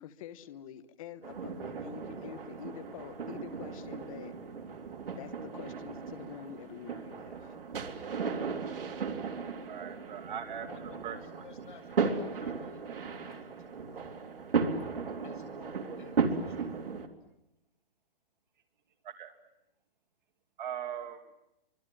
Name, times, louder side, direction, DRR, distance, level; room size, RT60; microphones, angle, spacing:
voice 1, 0.0-4.3 5.2-7.5, left 10 dB, 35° left, 13 dB, 1.2 m, -46 dB
sound 1, 1.2-17.1, right 5 dB, 70° right, 3.3 m, -36 dB
voice 2, 9.7-10.7 11.0-11.2 19.0-19.3 20.6-21.2, right 9 dB, 55° right, 6 dB, 2.3 m, -39 dB
voice 3, 10.6-14.1 15.2-17.0, left 4 dB, 60° left, 4 dB, 7.7 m, -54 dB
29.5 x 25.0 x 7.6 m, 0.87 s
hypercardioid pair, 155°, 29 cm